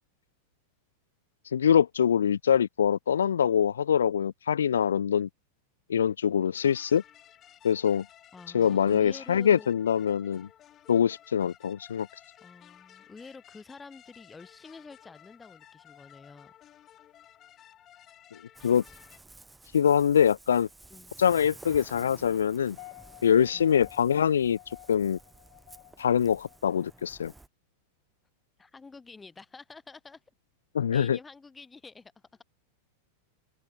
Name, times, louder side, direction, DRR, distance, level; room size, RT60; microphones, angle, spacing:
voice 1, 1.5-5.3 5.9-7.0 7.6-8.0 8.5-10.5 10.9-12.1 18.6-18.8 19.7-20.7 21.2-22.8 23.2-24.6 24.9-25.2 26.0-27.3 30.7-31.2, left 8 dB, 65° left, 0.3 m, -24 dB
sound 1, 6.6-19.2, left 11 dB, 30° left, 5.4 m, -55 dB
voice 2, 8.3-9.8 12.4-16.5 20.9-21.1 23.4-23.7 28.6-30.2 30.9-32.4, left 4 dB, 10° left, 5.5 m, -48 dB
Ocean, 18.5-27.5, right 2 dB, 10° right, 6.1 m, -53 dB
sound 2, 22.7-27.4, left 40 dB or more, 45° left, 4.0 m, -52 dB
figure-of-eight pair, 90°, 0 cm